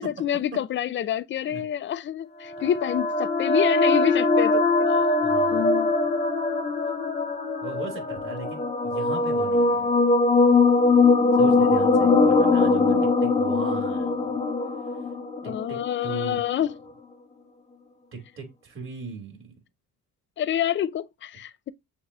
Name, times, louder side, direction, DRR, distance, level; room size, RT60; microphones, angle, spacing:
voice 1, 0.0-5.2 5.5-5.9 11.2-13.0 15.4-16.7 20.4-21.7, left 10 dB, 40° left, 0.4 m, -28 dB
sound 1, 2.5-16.1, left 3 dB, 20° left, 1.2 m, -21 dB
voice 2, 5.2-5.7 7.6-9.8 11.3-14.4 15.4-16.4 18.1-19.5, right 4 dB, 45° right, 2.4 m, -38 dB
7.1 x 2.6 x 2.2 m
cardioid pair, 90°, 30 cm